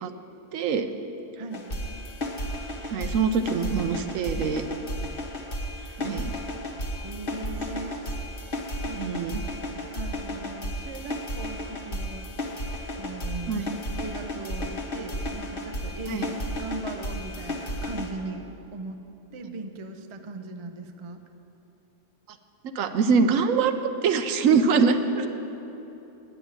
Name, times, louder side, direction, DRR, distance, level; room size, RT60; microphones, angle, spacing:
voice 1, 0.5-0.9 2.9-4.6 6.0-6.3 9.0-9.4 13.5-13.7 16.1-16.3 22.8-24.9, right 5 dB, 80° right, 9 dB, 1.0 m, -23 dB
voice 2, 1.4-1.8 7.0-8.0 8.9-9.0 9.3-9.5 9.9-12.3 13.0-19.0 19.3-21.2 24.5-25.3, right 3 dB, 40° right, 6 dB, 0.4 m, -38 dB
sound 1, 1.5-18.1, left 1 dB, 45° left, 1.2 m, -33 dB
9.8 x 7.0 x 8.8 m, 3.0 s
omnidirectional pair, 1.4 m